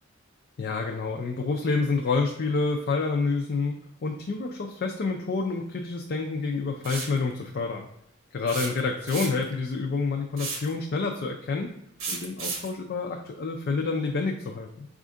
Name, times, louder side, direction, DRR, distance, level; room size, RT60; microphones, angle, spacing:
voice 1, 0.6-3.7 4.0-7.9 8.3-11.7 12.1-14.9, left 4 dB, 50° left, 1 dB, 0.4 m, -28 dB
sound 1, 6.8-7.2 8.5-9.5 10.4-10.7 12.0-12.7, right 4 dB, 75° right, 0.8 m, -33 dB
4.2 x 2.5 x 3.6 m, 0.75 s
head